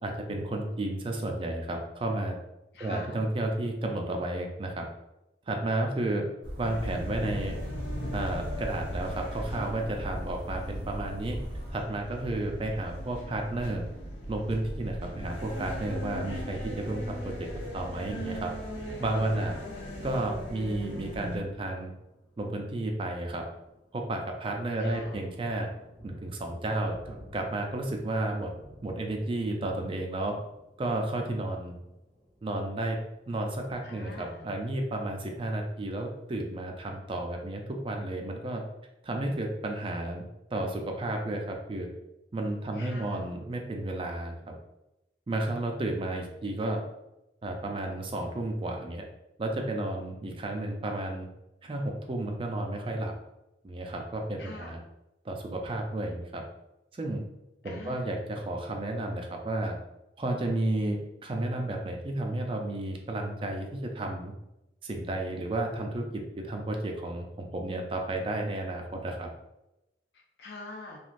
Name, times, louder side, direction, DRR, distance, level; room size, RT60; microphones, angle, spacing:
voice 1, 0.0-2.4 2.8-4.8 5.5-6.3 6.6-7.6 8.1-11.4 11.7-13.8 14.3-17.5 17.7-18.5 19.0-19.6 20.0-21.9 22.4-23.4 23.9-25.7 26.0-28.5 28.8-30.4 30.8-31.8 32.4-33.0 33.3-38.6 39.0-40.2 40.5-41.9 42.3-44.5 45.3-46.8 47.4-49.0 49.4-51.3 51.6-53.1 53.6-54.8 55.2-56.4 56.9-57.2 57.6-59.8 60.2-64.3 64.8-69.3, right 1 dB, 30° right, 2 dB, 0.4 m, -32 dB
voice 2, 2.7-3.3 19.1-19.9 24.8-25.2 33.8-34.4 42.7-43.3 54.4-54.7 57.6-58.0 70.1-71.0, left 2 dB, 60° left, -1 dB, 0.5 m, -45 dB
sound 1, 6.4-11.7, equal, 75° right, 0.7 m, -39 dB
sound 2, 6.6-21.4, equal, 85° left, 0.8 m, -39 dB
Thunder, 20.5-34.7 35.0-36.3, equal, 30° left, 1.0 m, -54 dB
3.1 x 2.4 x 2.5 m, 0.92 s
head